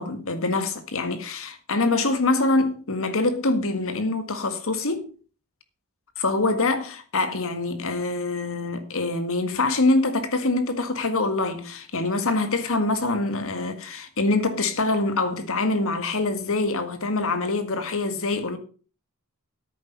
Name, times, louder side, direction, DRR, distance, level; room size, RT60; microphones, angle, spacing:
voice 1, 0.0-5.1 6.2-18.6, left 2 dB, 65° left, 1.8 m, -25 dB
10.5 x 9.1 x 5.4 m
head